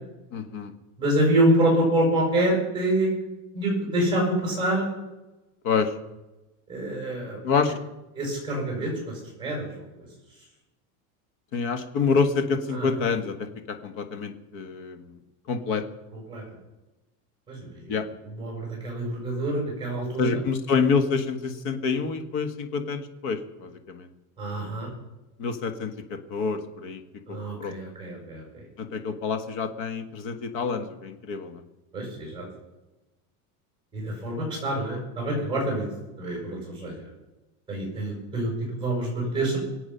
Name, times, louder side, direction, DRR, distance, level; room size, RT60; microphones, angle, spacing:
voice 1, 0.3-0.7 5.6-5.9 7.4-7.8 11.5-15.2 15.5-15.8 17.9-18.0 20.2-24.1 25.4-27.0 27.3-27.7 28.8-31.6, left 5 dB, 50° left, 8 dB, 1.7 m, -27 dB
voice 2, 1.0-3.1 3.5-4.9 6.7-7.4 8.1-9.7 12.7-12.9 16.3-16.4 17.5-17.7 18.4-20.4 24.4-24.9 27.3-28.6 31.9-32.4 33.9-35.9 36.2-37.0 37.7-39.6, right 1 dB, 10° right, -2 dB, 6.8 m, -26 dB
24.5 x 8.5 x 5.7 m, 1.0 s
supercardioid pair, 165°, 44 cm